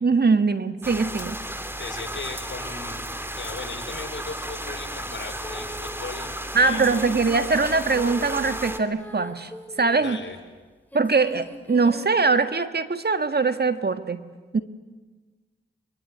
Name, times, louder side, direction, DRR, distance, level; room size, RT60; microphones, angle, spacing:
voice 1, 0.0-1.4 6.5-9.5 9.8-10.2 10.9-14.2 14.5-14.6, right 4 dB, 50° right, 9 dB, 1.7 m, -22 dB
sound 1, 0.8-8.8, right 1 dB, 10° right, 2.6 m, -34 dB
voice 2, 1.7-3.1 3.3-7.0 9.9-10.4, left 4 dB, 60° left, 4 dB, 5.2 m, -37 dB
sound 2, 5.3-6.0 6.6-10.3 10.9-12.1, equal, 10° left, 4.3 m, -40 dB
24.5 x 24.0 x 9.7 m, 1.3 s
cardioid pair, 45°, 21 cm